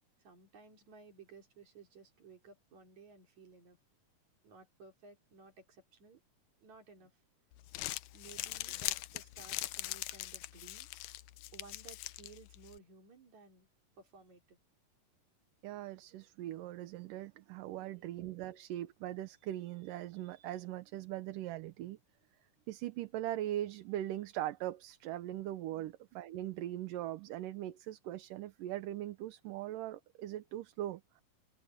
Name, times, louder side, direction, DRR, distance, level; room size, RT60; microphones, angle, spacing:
voice 1, 0.2-3.8 4.4-6.2 6.6-7.1 8.1-10.9 11.5-13.7 14.0-14.6 17.8-18.1, right 4 dB, 60° right, 5.3 m, -57 dB
Crumpling crinkling, 7.5-12.8, left 17 dB, 85° left, 2.2 m, -42 dB
voice 2, 15.6-22.0 22.7-31.2, right 13 dB, 80° right, 2.6 m, -40 dB
open air
omnidirectional pair, 3.8 m